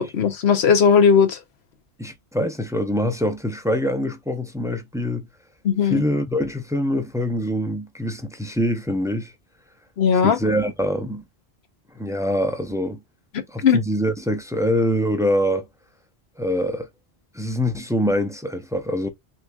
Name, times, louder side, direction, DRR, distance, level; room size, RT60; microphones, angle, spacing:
voice 1, 0.0-1.4 5.6-6.0 10.0-10.4 13.6-13.8, left 6 dB, 85° left, 1.2 m, -17 dB
voice 2, 2.0-5.3 5.8-9.3 10.2-11.2 11.9-13.0 13.5-15.7 16.4-16.9 17.3-19.1, equal, 5° right, 0.5 m, -24 dB
6.4 x 2.9 x 2.3 m
omnidirectional pair, 1.0 m